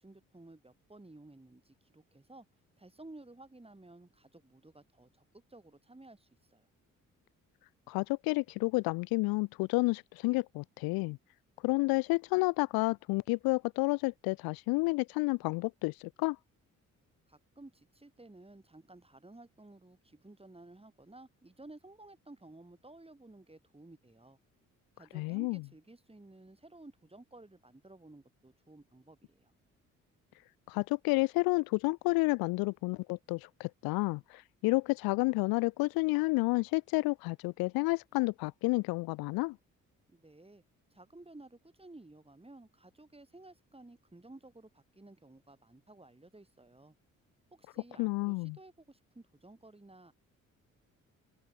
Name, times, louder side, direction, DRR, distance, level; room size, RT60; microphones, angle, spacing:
voice 1, 0.0-2.5 2.8-6.7 17.3-24.4 25.0-29.5 40.1-40.6 40.9-46.9 47.5-50.1, right 2 dB, 15° right, 4.6 m, -55 dB
voice 2, 7.9-11.2 11.6-16.4 25.1-25.6 30.7-39.6 48.0-48.6, left 25 dB, 60° left, 0.5 m, -30 dB
open air
hypercardioid pair, 45°, 40 cm